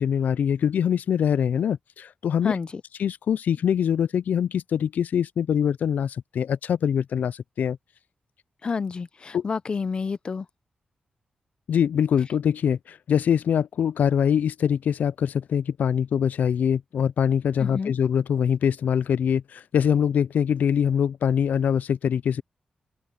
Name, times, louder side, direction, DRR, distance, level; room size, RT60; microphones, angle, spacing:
voice 1, 0.0-2.5 3.0-7.8 9.3-9.4 11.7-22.4, left 8 dB, 85° left, 0.3 m, -23 dB
voice 2, 2.4-2.8 8.6-10.5 17.6-17.9, left 5 dB, 40° left, 0.5 m, -29 dB
wide cardioid pair, 170°, 3 cm